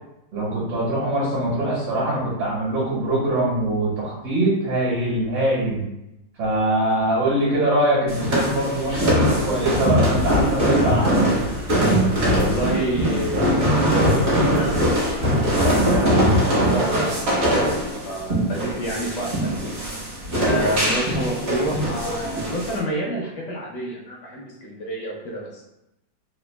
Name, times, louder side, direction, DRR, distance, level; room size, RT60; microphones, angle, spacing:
voice 1, 0.3-5.8 6.4-11.4, right 1 dB, 65° right, -7 dB, 1.7 m, -23 dB
sound 1, 8.1-22.8, equal, 45° right, 0.9 m, -21 dB
sound 2, 8.9-16.3, left 2 dB, 85° right, 1.6 m, -35 dB
voice 2, 12.3-17.8 18.1-19.5 20.4-25.6, right 1 dB, 70° left, -3 dB, 1.0 m, -29 dB
3.7 x 2.3 x 2.2 m, 0.88 s
omnidirectional pair, 2.2 m